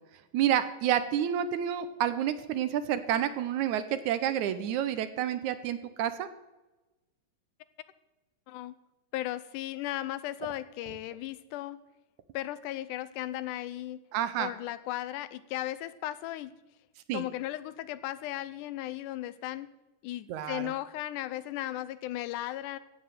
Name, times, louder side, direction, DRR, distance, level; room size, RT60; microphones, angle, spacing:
voice 1, 0.3-6.3 14.1-14.5 17.1-17.3 20.3-20.7, right 10 dB, 75° right, 12 dB, 2.0 m, -29 dB
voice 2, 9.1-11.8 12.3-14.0 14.4-16.5 17.1-19.7 20.0-22.8, left 14 dB, 80° left, 14 dB, 2.1 m, -36 dB
15.5 x 7.8 x 6.7 m, 1.1 s
omnidirectional pair, 3.7 m